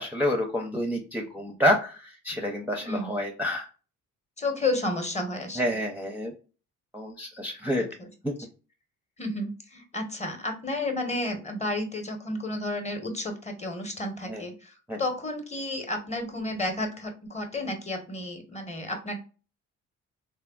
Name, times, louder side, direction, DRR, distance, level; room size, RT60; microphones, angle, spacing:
voice 1, 0.0-3.7 5.6-6.3 6.9-7.9 8.2-8.3 14.3-14.4 14.9-15.0, left 1 dB, 5° right, 1 dB, 0.5 m, -28 dB
voice 2, 2.8-3.1 4.4-5.8 7.8-8.1 9.2-14.7 15.0-19.2, left 2 dB, 20° left, 5 dB, 0.9 m, -32 dB
3.4 x 2.1 x 2.3 m, 0.35 s
cardioid pair, 90°, 30 cm